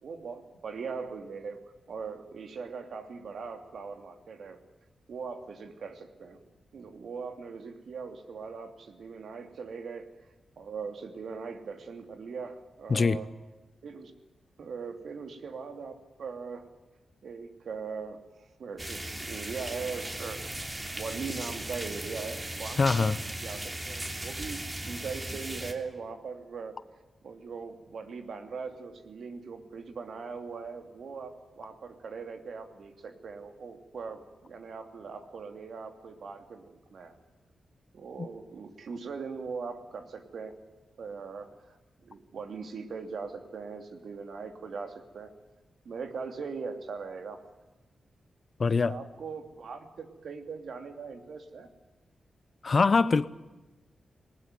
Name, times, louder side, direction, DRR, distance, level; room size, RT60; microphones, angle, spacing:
voice 1, 0.0-4.6 5.1-6.4 6.7-10.3 10.6-13.3 13.8-14.1 14.6-16.7 17.2-20.6 20.9-23.2 23.4-26.8 27.2-37.2 37.9-40.6 41.0-41.8 42.0-45.3 45.8-47.5 48.8-51.7, right 5 dB, 75° right, 2.8 m, -40 dB
voice 2, 12.9-13.2 22.8-23.2 38.2-38.3 48.6-49.0 52.6-53.3, left 4 dB, 45° left, 0.9 m, -23 dB
sound 1, 18.8-25.7, right 1 dB, 20° right, 3.1 m, -37 dB
20.5 x 19.0 x 9.4 m
cardioid pair, 95°, 0 cm